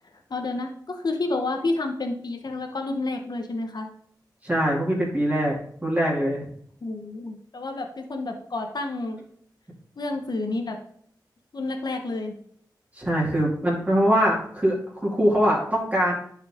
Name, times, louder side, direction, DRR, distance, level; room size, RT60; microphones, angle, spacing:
voice 1, 0.3-3.9 6.8-9.2 10.0-10.8 11.5-12.3, left 2 dB, 65° left, 4 dB, 1.1 m, -30 dB
voice 2, 4.4-5.6 5.8-6.5 12.9-16.1, equal, 20° right, -5 dB, 2.7 m, -22 dB
10.5 x 4.8 x 3.7 m, 0.63 s
wide cardioid pair, 65°, 8 cm